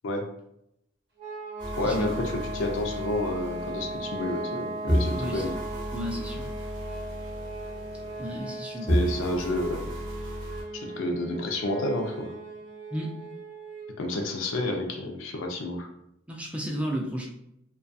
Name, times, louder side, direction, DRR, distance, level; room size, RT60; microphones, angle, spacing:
sound 1, 1.2-14.0, right 2 dB, 60° right, 0.7 m, -38 dB
sound 2, 1.6-4.6 4.9-8.6 8.9-10.6, equal, 25° right, 0.8 m, -33 dB
voice 1, 1.8-5.5 8.9-9.9 10.8-12.4 14.0-15.9, left 1 dB, 75° left, 3 dB, 0.5 m, -30 dB
voice 2, 5.2-5.5 5.9-6.5 8.2-8.9 12.9-13.1 16.3-17.3, equal, 5° right, -2 dB, 0.4 m, -33 dB
2.3 x 2.3 x 2.5 m, 0.78 s
head